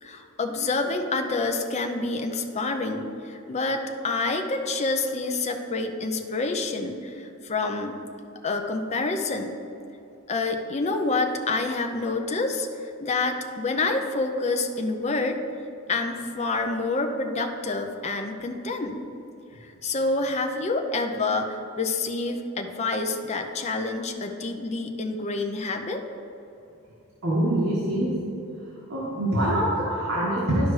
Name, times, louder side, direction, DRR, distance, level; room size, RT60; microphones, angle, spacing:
voice 1, 0.0-8.0 8.4-9.6 10.3-15.4 15.9-19.0 19.6-26.0, left 3 dB, 30° left, 4 dB, 0.5 m, -28 dB
voice 2, 27.2-28.1 28.9-30.7, right 1 dB, 75° right, -8 dB, 1.7 m, -24 dB
12.0 x 4.8 x 3.2 m, 2.8 s
head